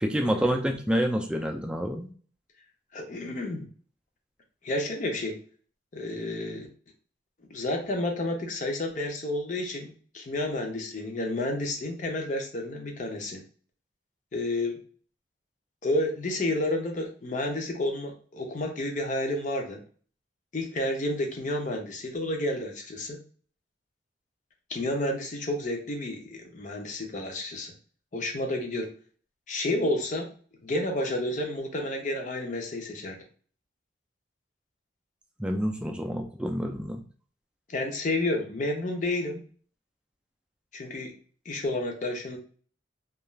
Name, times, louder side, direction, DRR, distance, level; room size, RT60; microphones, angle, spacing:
voice 1, 0.0-2.1 35.4-37.0, equal, 5° right, 2 dB, 0.3 m, -28 dB
voice 2, 2.9-3.7 4.6-5.4 5.9-6.7 7.5-13.4 14.3-14.8 15.8-19.8 20.5-23.2 24.7-27.7 28.1-28.9 29.5-30.3 30.6-33.2 37.7-39.4 40.7-41.1 41.5-42.4, left 1 dB, 40° left, 2 dB, 0.6 m, -30 dB
2.3 x 2.3 x 3.0 m, 0.43 s
head